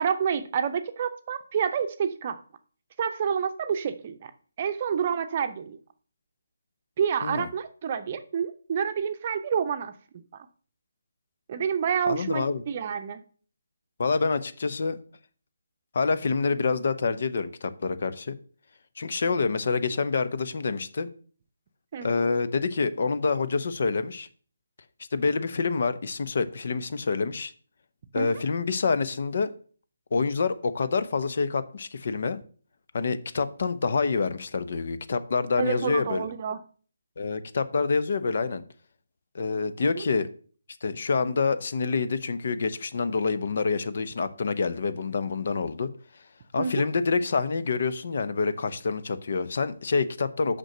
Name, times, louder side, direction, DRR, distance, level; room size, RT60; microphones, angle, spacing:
voice 1, 0.0-2.4 3.0-4.3 4.6-5.8 7.0-9.9 11.5-13.2 21.9-22.1 28.1-28.3 35.6-36.6 40.0-40.1 46.6-46.9, right 7 dB, 35° right, 9 dB, 0.7 m, -28 dB
voice 2, 12.1-12.6 14.0-15.0 15.9-18.3 19.0-21.1 22.0-24.3 25.1-27.5 28.1-29.5 30.1-32.4 32.9-36.3 37.2-38.6 39.3-40.3 40.8-45.9 46.5-50.6, left 4 dB, 50° left, 13 dB, 0.9 m, -27 dB
6.3 x 6.1 x 6.6 m, 0.43 s
figure-of-eight pair, 150°, 0 cm